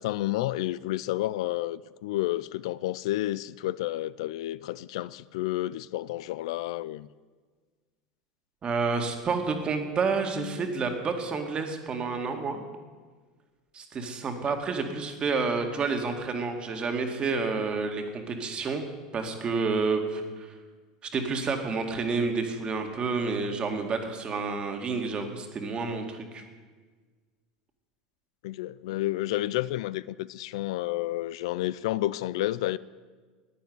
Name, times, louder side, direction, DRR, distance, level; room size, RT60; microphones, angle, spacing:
voice 1, 0.0-7.1 14.5-14.6 28.4-32.8, left 16 dB, 70° left, 18 dB, 0.4 m, -30 dB
voice 2, 8.6-12.6 13.7-18.8 19.1-20.5 21.1-26.4, right 4 dB, 30° right, 5 dB, 2.2 m, -29 dB
11.5 x 9.4 x 9.6 m, 1.5 s
hypercardioid pair, 95°, 3 cm